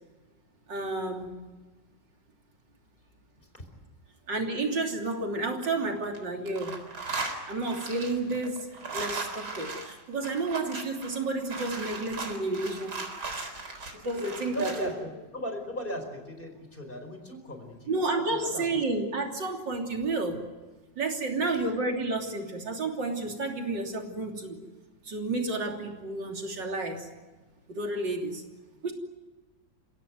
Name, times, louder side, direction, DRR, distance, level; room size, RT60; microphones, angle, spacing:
voice 1, 0.7-1.3 4.3-6.7 7.5-8.7 8.9-13.1 13.9-14.9 17.9-20.4 21.0-24.6 25.0-27.1 27.7-28.4 28.8-28.9, right 2 dB, 90° right, 2 dB, 3.8 m, -31 dB
sound 1, 5.4-6.2 6.5-14.9, right 3 dB, 65° right, 4.5 m, -37 dB
voice 2, 14.5-18.0 18.3-18.8, equal, 30° left, 5 dB, 4.9 m, -38 dB
30.0 x 16.5 x 9.5 m, 1.2 s
omnidirectional pair, 1.9 m